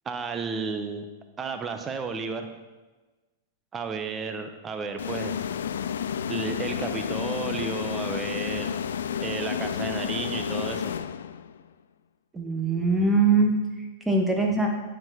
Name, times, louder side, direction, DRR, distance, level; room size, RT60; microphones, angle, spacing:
voice 1, 0.1-1.0 1.4-2.5 3.7-5.3 6.3-8.8 9.2-10.9, right 5 dB, 20° right, 6 dB, 0.8 m, -32 dB
sound 1, 5.0-11.6, left 8 dB, 75° left, 0.3 m, -31 dB
voice 2, 12.3-14.7, right 3 dB, 5° right, 0 dB, 1.3 m, -23 dB
8.7 x 4.4 x 4.1 m, 1.2 s
hypercardioid pair, 120°, 0 cm